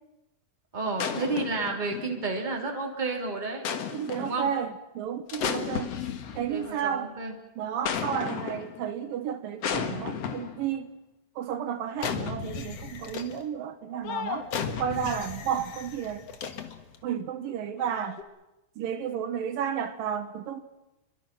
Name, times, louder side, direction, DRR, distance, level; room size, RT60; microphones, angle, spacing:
voice 1, 0.7-3.6 4.2-4.5 5.7-5.9 6.3-7.3, right 3 dB, 15° right, 3.0 m, -31 dB
sound 1, 1.0-2.4 3.6-4.5 5.3-6.7 7.8-8.8 9.6-10.7 12.0-13.4 14.0-17.0 17.8-18.2, left 7 dB, 55° left, 2.2 m, -34 dB
voice 2, 3.9-5.9 6.4-7.1 7.6-10.9 11.4-14.5 14.8-16.3 17.0-18.2 18.8-20.6, right 8 dB, 80° right, 2.9 m, -32 dB
28.0 x 23.5 x 6.1 m
omnidirectional pair, 4.0 m